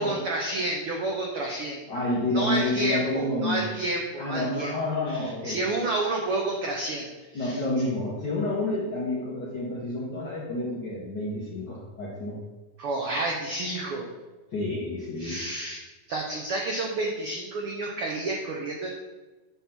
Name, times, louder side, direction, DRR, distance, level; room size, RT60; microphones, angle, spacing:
voice 1, 0.0-1.8 2.3-4.7 5.1-7.1 7.3-7.6 12.8-14.1 15.2-15.8 16.1-18.9, right 2 dB, 85° right, 0 dB, 1.2 m, -30 dB
voice 2, 1.9-3.6 4.2-5.6 7.3-12.4 14.5-15.4, left 2 dB, 55° left, -5 dB, 1.2 m, -29 dB
8.3 x 3.6 x 5.8 m, 1.2 s
omnidirectional pair, 3.6 m